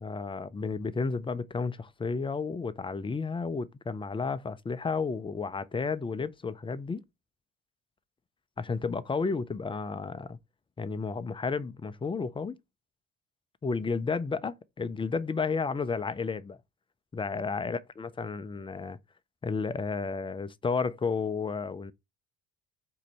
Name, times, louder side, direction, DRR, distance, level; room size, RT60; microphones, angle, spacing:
voice 1, 0.0-7.0 8.6-10.4 10.8-12.6 13.6-16.6 17.1-19.0 19.4-21.9, left 4 dB, 15° left, 0.3 m, -32 dB
4.6 x 2.5 x 4.1 m
supercardioid pair, 70°, 42 cm